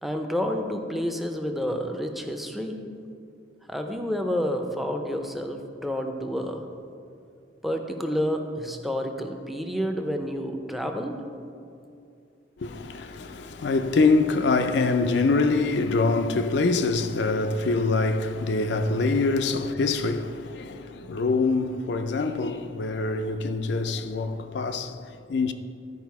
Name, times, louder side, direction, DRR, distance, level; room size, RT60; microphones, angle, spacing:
voice 1, 0.0-2.8 3.7-6.6 7.6-11.2, equal, ahead, 0.6 m, -29 dB
voice 2, 12.6-25.5, left 3 dB, 70° left, 0.5 m, -25 dB
12.0 x 4.9 x 4.7 m
head